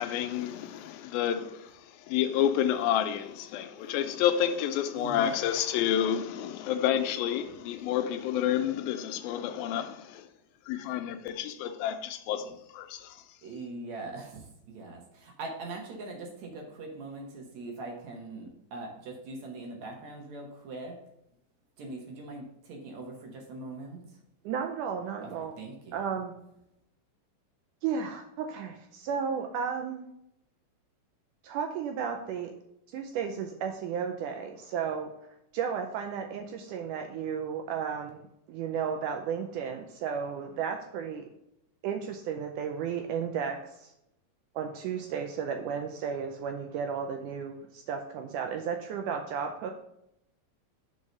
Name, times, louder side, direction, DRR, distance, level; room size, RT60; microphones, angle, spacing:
voice 1, 0.0-1.7 2.1-10.3 10.7-13.2, left 10 dB, 85° left, 2.4 m, -29 dB
voice 2, 4.9-5.3 12.4-12.5 13.4-21.0 21.8-24.2 25.2-26.0, right 2 dB, 60° right, 2.2 m, -42 dB
voice 3, 24.4-25.5 25.9-26.3 27.8-30.0 31.4-32.5 32.9-35.1 35.5-38.2 38.5-41.3 41.8-43.9 44.5-49.7, right 7 dB, 80° right, 1.9 m, -33 dB
5.5 x 4.8 x 6.5 m
omnidirectional pair, 4.1 m